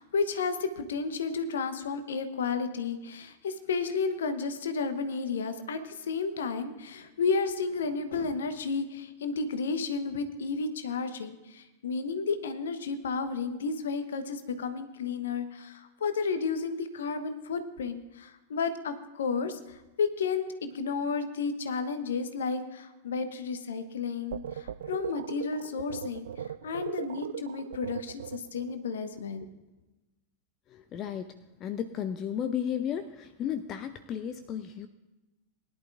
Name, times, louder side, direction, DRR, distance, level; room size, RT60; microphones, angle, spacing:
voice 1, 0.0-29.5, left 4 dB, 65° left, 9 dB, 1.1 m, -32 dB
sound 1, 24.3-28.7, right 9 dB, 60° right, 0.4 m, -38 dB
voice 2, 30.9-31.2 31.6-33.0 33.4-34.9, left 9 dB, 35° left, 10 dB, 0.6 m, -33 dB
21.0 x 11.0 x 2.5 m, 1.0 s
figure-of-eight pair, 90°, 0 cm